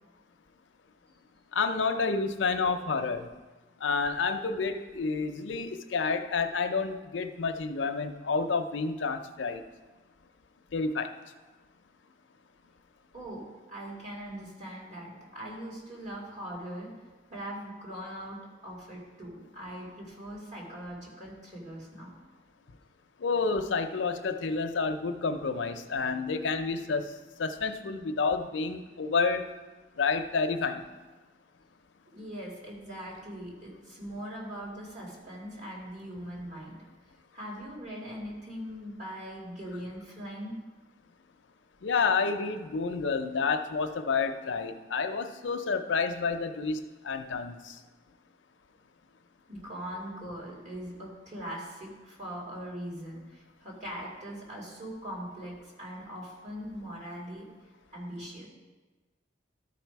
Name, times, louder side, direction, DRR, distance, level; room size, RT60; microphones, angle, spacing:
voice 1, 1.5-3.3 3.8-9.6 10.7-11.1 23.2-27.1 27.4-29.5 30.0-30.8 41.8-47.8, left 4 dB, 85° left, 7 dB, 0.6 m, -29 dB
voice 2, 13.1-16.9 17.3-22.1 32.1-36.9 37.3-40.6 49.5-57.5 57.9-58.5, equal, 40° right, -4 dB, 2.7 m, -41 dB
12.5 x 5.0 x 4.6 m, 1.2 s
head